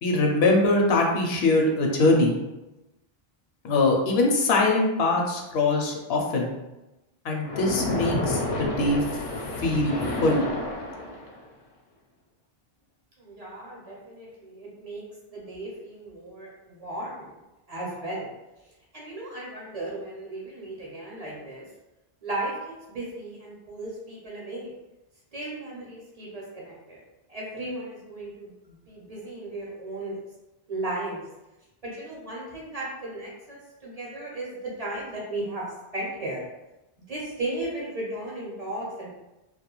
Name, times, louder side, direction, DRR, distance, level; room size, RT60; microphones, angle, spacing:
voice 1, 0.0-2.3 3.6-6.5 7.2-9.0 9.6-10.5, left 2 dB, 80° left, 1 dB, 0.8 m, -22 dB
Splash splatter, 7.4-11.5, left 2 dB, 55° left, 0.4 m, -30 dB
voice 2, 13.2-15.0 15.3-17.3 17.7-18.3 18.9-21.6 22.2-22.5 22.9-24.7 25.3-27.0 27.3-30.2 30.7-31.2 31.8-35.6 35.9-36.4 37.1-39.1, right 2 dB, 45° right, -5 dB, 0.6 m, -35 dB
2.3 x 2.2 x 2.9 m, 0.99 s
omnidirectional pair, 1.1 m